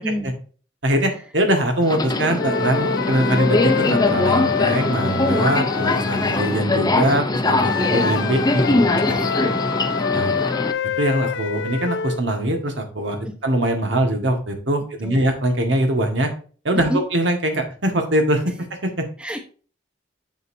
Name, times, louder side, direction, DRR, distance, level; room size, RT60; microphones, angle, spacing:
voice 1, 0.8-8.9 10.1-10.3 11.0-16.3 16.7-19.1, right 1 dB, 85° right, 4 dB, 1.7 m, -22 dB
Subway metro underground, 1.8-10.7, left 2 dB, 20° left, 0.7 m, -22 dB
sound 1, 2.4-6.7 7.6-12.2, left 7 dB, 70° left, 0.4 m, -26 dB
voice 2, 7.7-8.3 9.1-9.3 13.2-13.3 15.0-15.2 16.7-17.0 19.2-19.4, equal, 5° right, 3 dB, 1.0 m, -28 dB
8.0 x 6.6 x 2.7 m, 0.39 s
head